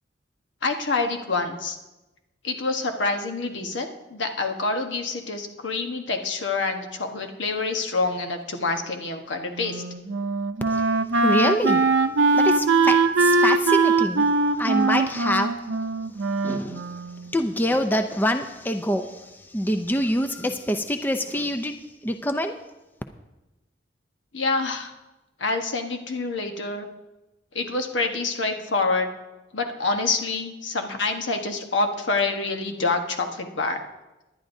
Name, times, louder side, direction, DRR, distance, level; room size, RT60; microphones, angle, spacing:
voice 1, 0.6-1.8 2.4-9.8 24.3-24.9 25.4-26.9 27.5-29.1 29.5-33.9, left 3 dB, 80° left, 5 dB, 1.2 m, -27 dB
Wind instrument woodwind instrument, 9.6-17.4, right 3 dB, 85° right, 0.6 m, -21 dB
voice 2, 11.1-11.8 12.3-14.3 14.6-15.5 16.4-16.9 17.3-22.5, equal, 10° left, 6 dB, 0.4 m, -25 dB
19.0 x 11.0 x 2.7 m, 1.0 s
head